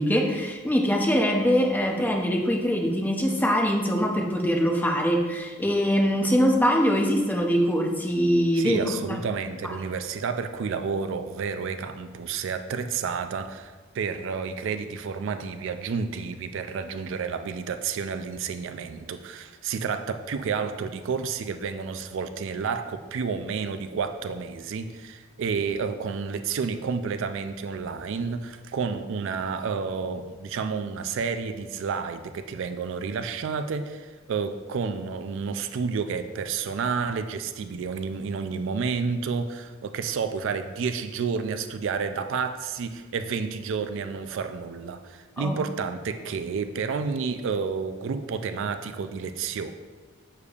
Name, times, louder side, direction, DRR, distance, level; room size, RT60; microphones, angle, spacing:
voice 1, 0.0-8.8 9.1-9.2 45.4-45.5, equal, 10° left, 1 dB, 0.6 m, -23 dB
voice 2, 8.5-49.7, right 5 dB, 65° right, 9 dB, 0.3 m, -30 dB
6.7 x 6.7 x 2.4 m, 1.4 s
head